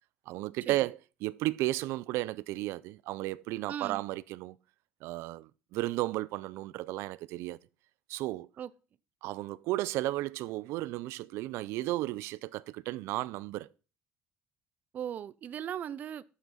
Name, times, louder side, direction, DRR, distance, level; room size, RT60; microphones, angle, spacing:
voice 1, 0.3-4.6 5.0-7.6 8.1-8.5 9.2-13.7, right 17 dB, 90° right, 0.4 m, -34 dB
voice 2, 3.7-4.0 8.6-8.7 14.9-16.2, right 9 dB, 40° right, 0.5 m, -38 dB
12.5 x 6.3 x 5.6 m
cardioid pair, 170°, 4 cm